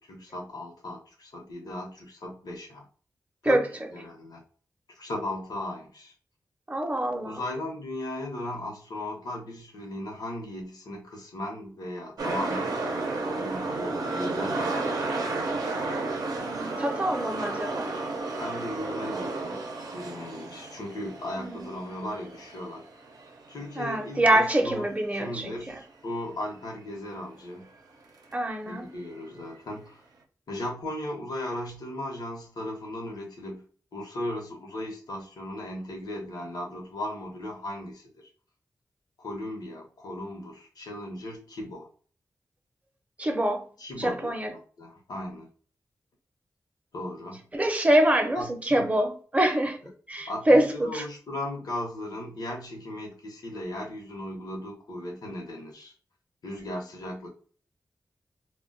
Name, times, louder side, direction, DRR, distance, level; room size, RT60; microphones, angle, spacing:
voice 1, 0.0-2.9 3.4-3.7 3.9-4.4 5.0-6.1 7.2-15.1 18.4-19.6 19.9-22.8 23.5-24.9 25.1-27.7 28.7-30.0 30.5-33.6 33.9-38.2 39.2-41.9 43.8-45.5 46.9-47.4 48.4-48.9 50.3-55.9 56.4-57.3, left 1 dB, 80° left, 0.8 m, -37 dB
voice 2, 6.7-7.4 16.5-17.9 21.4-21.7 23.8-25.8 28.3-28.9 43.2-43.7 44.0-44.5 47.5-49.8 50.1-51.0, right 1 dB, 20° right, 0.6 m, -25 dB
sound 1, 12.2-24.2 24.5-24.6, right 3 dB, 75° right, 0.6 m, -32 dB
2.2 x 2.2 x 3.7 m
wide cardioid pair, 85°, 7 cm